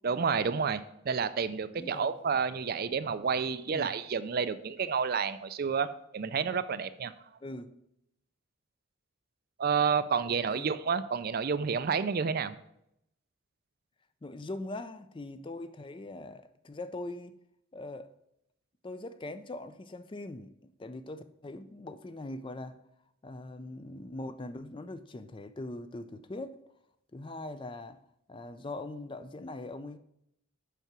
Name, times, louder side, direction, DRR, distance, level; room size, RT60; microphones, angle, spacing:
voice 1, 0.0-7.1 9.6-12.6, right 6 dB, 45° right, 0.4 m, -30 dB
voice 2, 1.7-2.1 3.7-4.0 7.4-7.7 10.3-10.7 14.2-17.3 17.7-18.1 18.8-22.8 23.2-26.6 27.1-28.0 28.3-30.0, left 2 dB, 25° left, 0.4 m, -41 dB
8.2 x 5.9 x 5.9 m
head